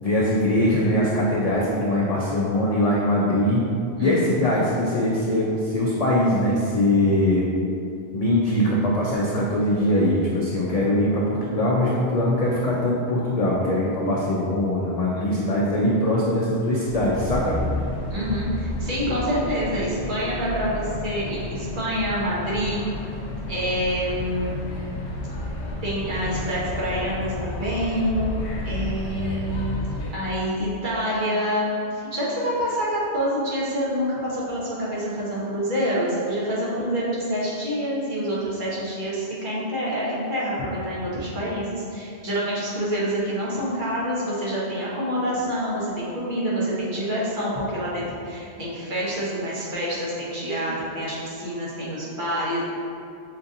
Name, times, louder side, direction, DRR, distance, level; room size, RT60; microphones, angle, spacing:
voice 1, 0.0-3.7 4.0-7.5 8.1-17.5, left 1 dB, 60° left, -5 dB, 0.4 m, -22 dB
sound 1, 16.8-30.1, left 2 dB, 80° left, 0.9 m, -31 dB
voice 2, 18.1-22.8 23.5-24.6 25.8-28.4 28.6-29.7 30.1-52.6, equal, 50° right, -7 dB, 1.0 m, -27 dB
5.2 x 2.5 x 2.6 m, 2.6 s
omnidirectional pair, 1.1 m